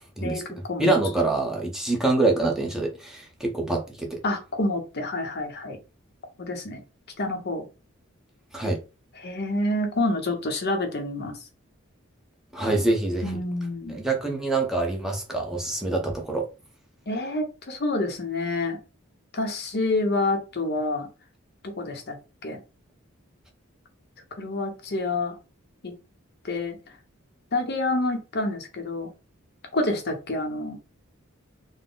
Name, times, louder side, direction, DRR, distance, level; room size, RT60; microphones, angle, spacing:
voice 1, 0.2-0.9 4.2-5.8 6.4-6.8 7.2-7.7 9.2-11.4 13.2-14.0 17.1-18.8 19.3-21.1 21.6-22.2 22.4-22.6 24.4-25.4 25.8-26.0 26.4-26.8 27.5-29.1 29.7-30.8, left 2 dB, 50° left, 0.8 m, -28 dB
voice 2, 0.8-4.2 8.5-8.8 12.5-13.4 13.9-16.5, right 2 dB, ahead, 0.8 m, -25 dB
4.0 x 2.1 x 3.7 m
head